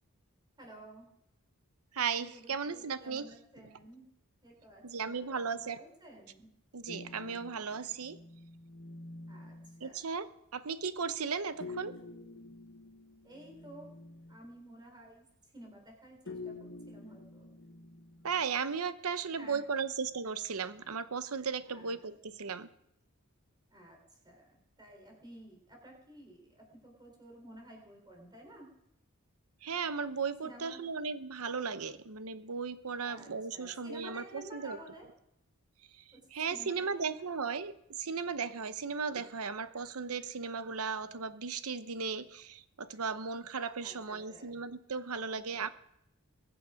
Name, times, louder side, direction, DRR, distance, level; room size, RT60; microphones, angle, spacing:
voice 1, 0.6-1.1 2.1-4.1 4.4-6.5 7.2-7.9 9.3-10.0 13.2-13.9 14.3-17.5 19.3-19.6 21.6-22.5 23.7-28.7 30.4-30.8 33.0-35.1 36.1-36.2 36.5-37.3 43.8-44.6 45.3-45.7, right 1 dB, 20° right, 1 dB, 4.0 m, -53 dB
voice 2, 1.9-3.3 4.8-5.8 6.7-8.2 9.8-10.3 10.5-12.0 18.2-22.7 29.6-34.8 36.0-36.1 36.3-45.7, right 5 dB, 85° right, 12 dB, 0.8 m, -36 dB
sound 1, 6.9-10.0 11.6-14.5 16.3-18.4, left 3 dB, 60° left, 1.3 m, -48 dB
22.0 x 8.0 x 5.1 m, 0.80 s
head